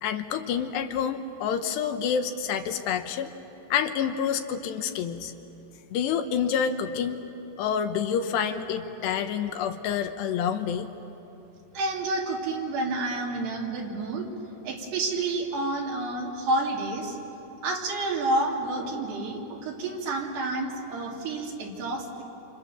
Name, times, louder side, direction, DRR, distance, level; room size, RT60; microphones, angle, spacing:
voice 1, 0.0-3.3 3.7-5.3 5.9-7.2 7.6-10.9, left 7 dB, 80° left, 7 dB, 3.1 m, -28 dB
voice 2, 11.7-14.3 14.6-17.2 17.6-22.2, right 2 dB, 70° right, -1 dB, 5.1 m, -29 dB
28.5 x 27.5 x 7.1 m, 2.9 s
omnidirectional pair, 5.0 m